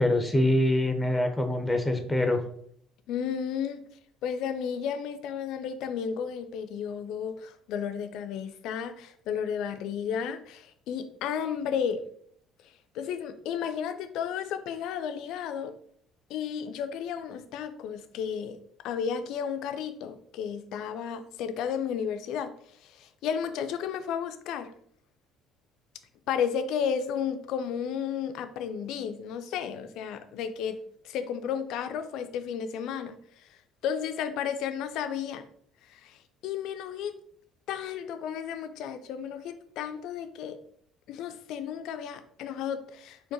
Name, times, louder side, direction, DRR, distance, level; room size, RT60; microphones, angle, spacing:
voice 1, 0.0-2.4, left 1 dB, 10° left, 5 dB, 0.5 m, -24 dB
voice 2, 3.1-3.8 4.2-12.0 12.9-15.7 16.3-18.6 18.8-22.5 22.8-24.7 26.3-30.8 31.0-33.5 33.8-35.5 35.9-37.1 37.7-40.6 41.1-43.3, left 7 dB, 60° left, 9 dB, 0.3 m, -33 dB
4.6 x 2.1 x 2.7 m, 0.63 s
figure-of-eight pair, 55°, 0 cm